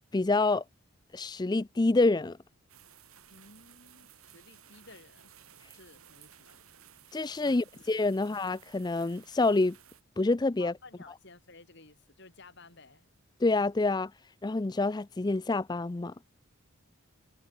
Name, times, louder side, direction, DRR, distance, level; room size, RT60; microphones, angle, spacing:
voice 1, 0.1-0.6 1.1-2.4 7.1-9.8 10.2-10.7 13.4-14.1 14.4-16.1, left 2 dB, 20° left, 0.4 m, -27 dB
sound 1, 2.7-10.0, right 9 dB, 85° right, 6.5 m, -57 dB
voice 2, 3.3-5.3 5.7-6.6 7.4-8.3 10.6-13.1, left 3 dB, 55° left, 4.0 m, -55 dB
head